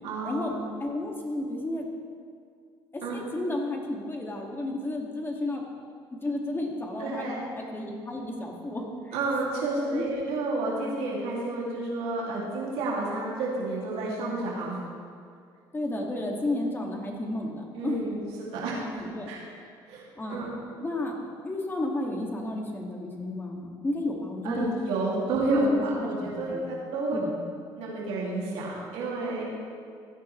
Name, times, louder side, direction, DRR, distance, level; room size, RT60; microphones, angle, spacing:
voice 1, 0.0-0.7 3.0-3.2 7.0-7.4 9.1-14.8 17.8-19.4 19.9-20.5 24.4-27.2 27.8-29.4, right 2 dB, 80° right, -5 dB, 2.5 m, -30 dB
voice 2, 0.8-1.8 3.1-5.6 6.1-7.3 7.7-9.2 9.9-10.1 15.7-18.2 18.9-19.3 20.2-20.4 20.8-21.1 21.4-24.8 25.5-26.1 26.5-26.6 27.1-27.3, left 1 dB, 20° left, 0 dB, 2.1 m, -32 dB
15.5 x 9.6 x 3.2 m, 2.3 s
supercardioid pair, 85°, 10 cm